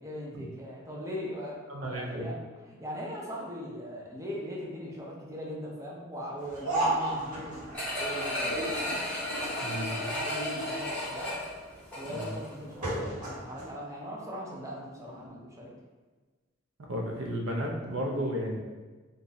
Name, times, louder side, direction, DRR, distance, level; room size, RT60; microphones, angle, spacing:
voice 1, 0.0-9.0 10.1-11.3 12.0-15.7, equal, 15° right, -3 dB, 0.5 m, -40 dB
voice 2, 1.7-2.3 9.6-10.0 12.1-12.3 16.9-18.6, equal, 70° right, 0 dB, 0.6 m, -33 dB
sound 1, 6.4-13.7, right 1 dB, 40° right, 1.2 m, -35 dB
sound 2, 7.7-12.5 12.9-13.0, left 1 dB, 5° left, 0.9 m, -34 dB
sound 3, 8.4-11.1 14.6-15.3, left 3 dB, 90° left, 0.4 m, -46 dB
2.6 x 2.3 x 3.9 m, 1.3 s
head